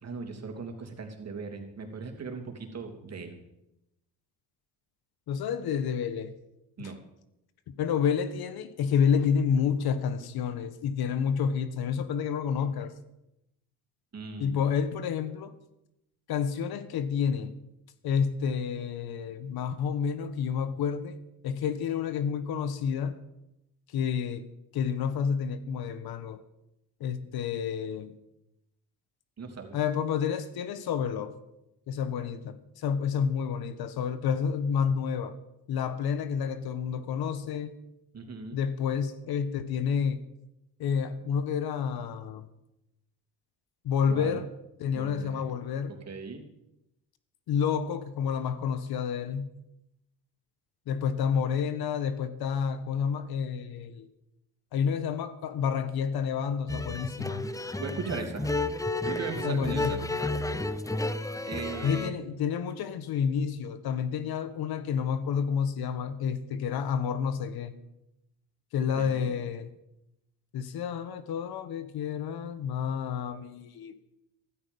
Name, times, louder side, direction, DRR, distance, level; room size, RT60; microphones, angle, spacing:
voice 1, 0.0-3.4 6.8-7.0 14.1-14.6 29.4-29.7 38.1-38.6 44.1-44.4 44.9-45.4 45.9-46.4 57.8-58.5 59.0-60.0 61.4-62.1 68.9-69.3, right 4 dB, 40° right, 3.2 m, -38 dB
voice 2, 5.3-6.3 6.8-6.9 7.7-12.9 14.4-15.5 16.3-17.6 18.0-21.2 21.4-23.2 23.9-24.4 24.7-26.4 27.0-28.1 29.7-31.3 31.9-35.3 35.7-37.7 38.5-40.2 40.8-42.5 43.8-44.5 44.8-45.9 47.5-49.5 50.9-54.1 54.7-57.5 59.4-60.1 61.8-67.7 68.7-69.7 70.5-74.0, left 7 dB, 70° left, 1.4 m, -29 dB
sound 1, 56.7-62.1, left 2 dB, 10° left, 0.9 m, -32 dB
15.0 x 13.0 x 5.4 m
supercardioid pair, 70°, 39 cm